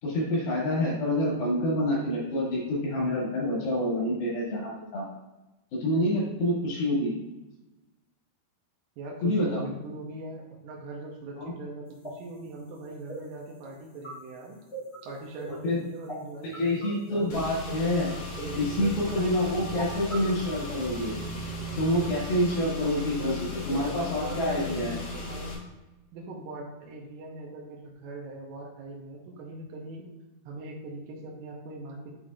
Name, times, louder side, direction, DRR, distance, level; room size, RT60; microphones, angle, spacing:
voice 1, 0.0-5.0 5.7-7.1 9.2-9.6 11.3-11.5 15.6-15.8 16.4-18.1 18.6-21.2 21.8-23.3 23.7-25.0, left 1 dB, 85° left, -5 dB, 4.3 m, -27 dB
voice 2, 9.0-14.6 15.0-18.0 18.4-20.9 22.8-25.6 26.1-30.1 30.5-32.1, right 2 dB, 75° right, -1 dB, 2.4 m, -41 dB
sound 1, 11.9-21.5, right 2 dB, 20° left, 0.7 m, -44 dB
Car / Engine, 17.3-25.5, left 2 dB, 50° left, 1.6 m, -37 dB
9.4 x 4.3 x 2.5 m, 1.0 s
omnidirectional pair, 4.2 m